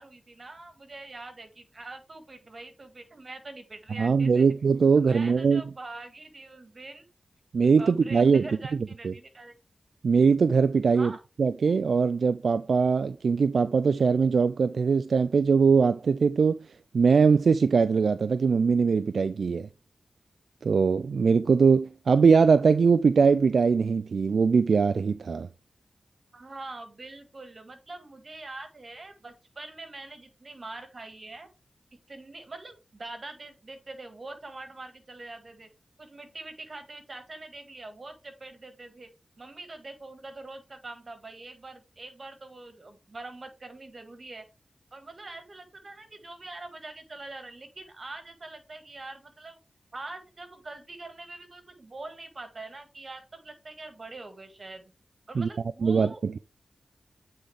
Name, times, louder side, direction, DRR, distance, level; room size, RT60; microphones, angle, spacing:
voice 1, 0.0-4.5 5.0-7.1 7.8-9.5 10.9-11.2 26.3-31.5 32.1-35.7 36.0-44.5 44.9-49.6 49.9-54.9 55.3-56.2, right 2 dB, 55° right, 1.8 m, -44 dB
voice 2, 4.0-5.6 7.5-8.5 9.0-9.1 10.0-11.1 11.4-16.6 16.9-19.7 20.6-25.5 55.4-55.5 55.8-56.4, right 5 dB, 80° right, 0.3 m, -21 dB
8.4 x 3.9 x 3.5 m
cardioid pair, 45°, 0 cm